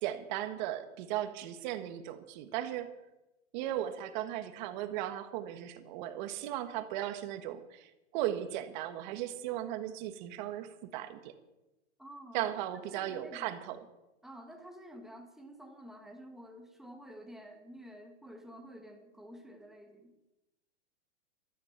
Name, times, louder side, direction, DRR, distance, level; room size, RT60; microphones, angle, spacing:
voice 1, 0.0-2.9 3.5-11.3 12.3-13.8, right 12 dB, 40° right, 9 dB, 1.6 m, -37 dB
voice 2, 12.0-12.5 12.9-13.6 14.2-20.1, equal, ahead, 3 dB, 1.6 m, -50 dB
14.5 x 13.5 x 5.8 m, 0.96 s
hypercardioid pair, 145°, 36 cm